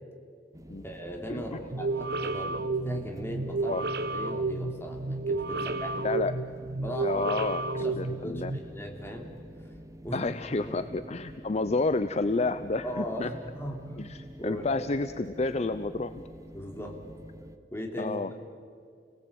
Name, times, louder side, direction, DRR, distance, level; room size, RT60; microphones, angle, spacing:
sound 1, 0.5-17.6, equal, 20° right, 1.0 m, -48 dB
voice 1, 0.8-3.8 4.1-6.1 6.8-7.2 7.7-9.4 10.0-10.3 12.8-13.9 14.4-14.8 16.5-17.0 17.7-18.3, equal, 15° left, 1 dB, 3.2 m, -38 dB
sound 2, 1.7-8.6, right 3 dB, 65° right, 1.1 m, -32 dB
voice 2, 5.6-6.3 7.0-8.5 10.1-13.3 14.0-16.2 18.0-18.3, left 3 dB, 40° left, 12 dB, 0.6 m, -30 dB
30.0 x 18.5 x 8.7 m, 2.3 s
head